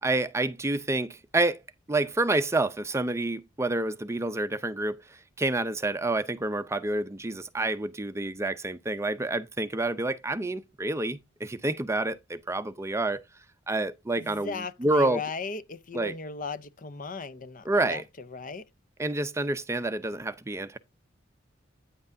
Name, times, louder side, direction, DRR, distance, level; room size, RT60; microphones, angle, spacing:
voice 1, 0.0-1.6 1.9-5.0 5.4-13.2 13.7-15.2 15.9-16.1 17.7-18.0 19.0-20.8, right 2 dB, 15° right, 0.5 m, -28 dB
voice 2, 14.2-18.7, left 4 dB, 45° left, 0.7 m, -37 dB
9.6 x 7.7 x 2.6 m
head